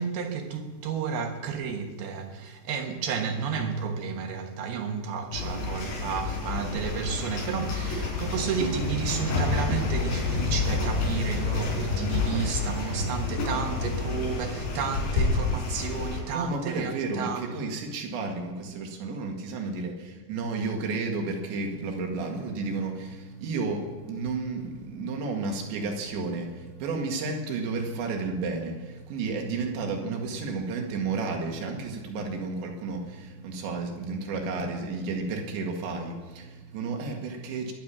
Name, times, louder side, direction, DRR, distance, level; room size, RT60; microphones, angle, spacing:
voice 1, 0.0-17.5, right 6 dB, 70° right, 3.0 m, -32 dB
sound 1, 5.3-16.2, left 4 dB, 80° left, 6.7 m, -29 dB
voice 2, 16.3-37.7, right 3 dB, 85° right, 4.3 m, -32 dB
21.5 x 7.4 x 8.8 m
omnidirectional pair, 5.0 m